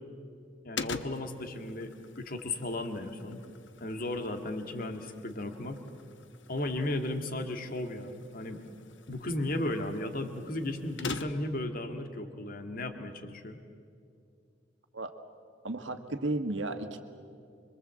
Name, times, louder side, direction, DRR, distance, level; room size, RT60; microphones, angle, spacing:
voice 1, 0.6-1.9 2.2-3.4 3.8-5.8 6.5-8.6 9.1-13.6, left 1 dB, 45° left, 6 dB, 2.0 m, -35 dB
sound 1, 0.8-11.6, left 4 dB, 70° left, 1.1 m, -45 dB
voice 2, 15.6-17.0, right 2 dB, 75° right, 7 dB, 1.7 m, -33 dB
26.5 x 23.0 x 7.7 m, 2.4 s
head